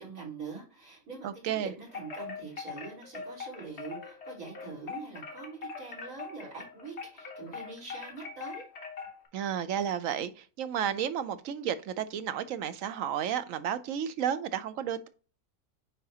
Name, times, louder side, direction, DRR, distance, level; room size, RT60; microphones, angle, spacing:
voice 1, 0.0-8.6, right 4 dB, 85° right, 4.4 m, -44 dB
voice 2, 1.2-1.7 9.3-15.1, right 9 dB, 70° right, 1.0 m, -32 dB
Wind chime, 1.9-9.3, left 5 dB, 50° left, 1.6 m, -42 dB
9.6 x 3.6 x 2.8 m
omnidirectional pair, 1.5 m